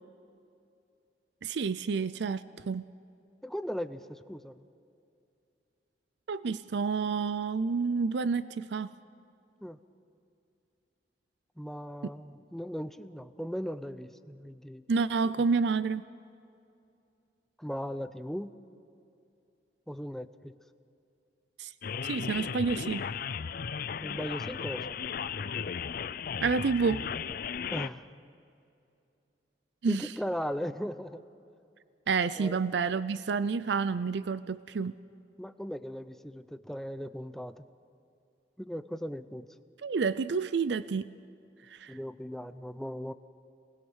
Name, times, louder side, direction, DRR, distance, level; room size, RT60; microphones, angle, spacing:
voice 1, 1.4-2.8 6.3-8.9 14.9-16.0 21.6-21.7 22.0-23.1 26.4-27.1 29.8-30.1 32.1-34.9 39.8-41.0 41.7-42.0, right 5 dB, 70° right, 15 dB, 0.5 m, -29 dB
voice 2, 3.4-4.7 9.6-9.8 11.6-14.8 17.6-18.5 19.9-20.5 24.0-25.0 27.7-28.0 29.9-31.2 32.4-32.6 35.4-37.7 38.6-39.5 41.9-43.1, equal, ahead, 11 dB, 0.6 m, -38 dB
sound 1, 21.8-27.9, left 7 dB, 55° left, 0.5 m, -35 dB
27.5 x 20.5 x 6.4 m, 2.6 s
head